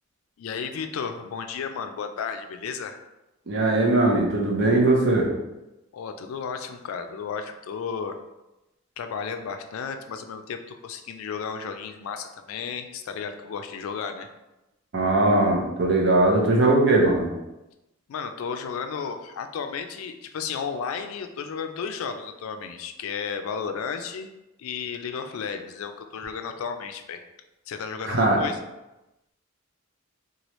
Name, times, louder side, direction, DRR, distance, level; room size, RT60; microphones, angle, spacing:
voice 1, 0.4-3.0 5.9-8.2 9.0-14.3 18.1-24.3 24.6-27.2 27.7-28.6, left 6 dB, 85° left, 7 dB, 0.3 m, -33 dB
voice 2, 3.5-5.3 14.9-17.3 28.0-28.4, right 2 dB, 55° right, -1 dB, 0.6 m, -20 dB
3.0 x 2.3 x 3.0 m, 0.98 s
head